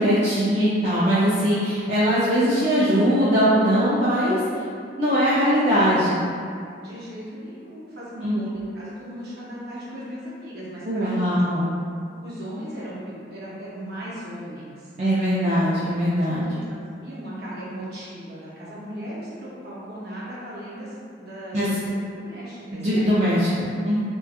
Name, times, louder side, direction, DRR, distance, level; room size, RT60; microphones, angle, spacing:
voice 1, 0.0-4.4 5.0-6.2 8.2-8.4 10.9-11.7 15.0-16.6 21.5-21.7 22.7-24.0, equal, 40° right, -11 dB, 0.4 m, -21 dB
voice 2, 5.2-5.7 6.8-11.3 12.2-14.9 16.5-23.1 23.5-23.8, equal, 60° right, -8 dB, 0.7 m, -37 dB
2.8 x 2.2 x 2.3 m, 2.3 s
head